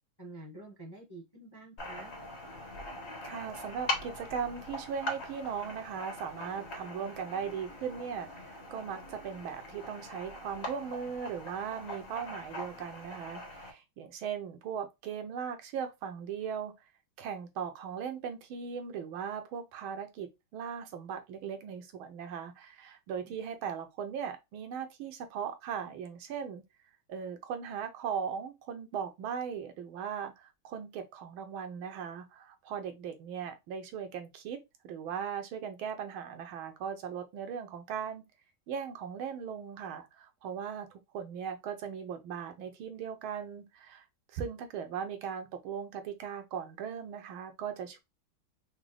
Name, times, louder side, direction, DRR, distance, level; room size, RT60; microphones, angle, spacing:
voice 1, 0.2-2.1 23.2-23.3, right 2 dB, 20° left, 0.8 m, -48 dB
sound 1, 1.8-13.7, left 1 dB, 40° left, 1.2 m, -42 dB
voice 2, 3.2-16.7 17.2-26.6 27.1-38.2 38.7-48.0, right 7 dB, 85° right, 1.6 m, -38 dB
4.9 x 2.2 x 3.3 m
omnidirectional pair, 2.2 m